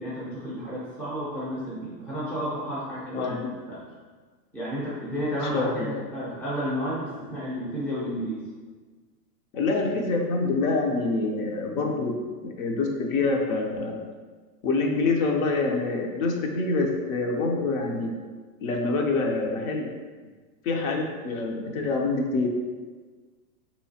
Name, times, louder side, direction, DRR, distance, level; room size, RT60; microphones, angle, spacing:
voice 1, 0.0-3.9 4.5-8.4, equal, 5° left, -8 dB, 0.5 m, -32 dB
voice 2, 5.5-5.9 9.5-12.2 12.6-14.0 14.6-18.1 18.6-19.9 20.6-22.5, left 3 dB, 60° left, 1 dB, 0.7 m, -26 dB
3.5 x 3.0 x 2.7 m, 1.4 s
hypercardioid pair, 130°, 48 cm